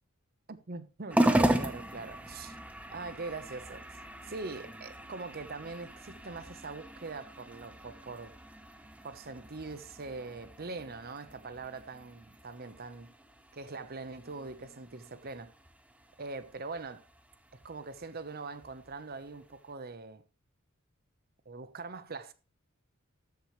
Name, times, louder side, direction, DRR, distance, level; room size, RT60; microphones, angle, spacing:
voice 1, 0.5-2.6 2.9-8.4 9.0-13.1 13.5-15.5 16.2-17.1 17.5-20.2 21.5-22.3, right 3 dB, 45° right, 0.9 m, -42 dB
sound 1, 1.1-19.7, right 1 dB, 5° right, 0.8 m, -37 dB
13.5 x 8.1 x 3.1 m
head